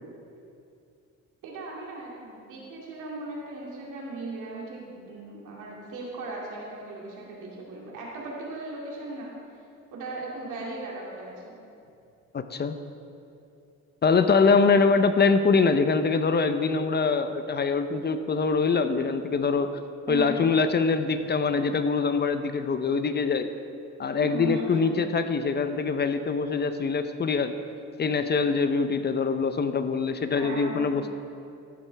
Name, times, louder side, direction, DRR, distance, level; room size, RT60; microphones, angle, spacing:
voice 1, 1.4-9.3 9.9-11.5 20.1-20.4 20.9-21.0 24.2-24.9 30.3-31.0, right 2 dB, 85° right, -4 dB, 2.4 m, -37 dB
voice 2, 12.3-12.7 14.0-19.7 20.1-23.5 24.0-27.5 28.0-31.1, left 4 dB, 35° left, 9 dB, 0.6 m, -24 dB
13.5 x 8.7 x 3.4 m, 2.6 s
cardioid pair, 90°, 30 cm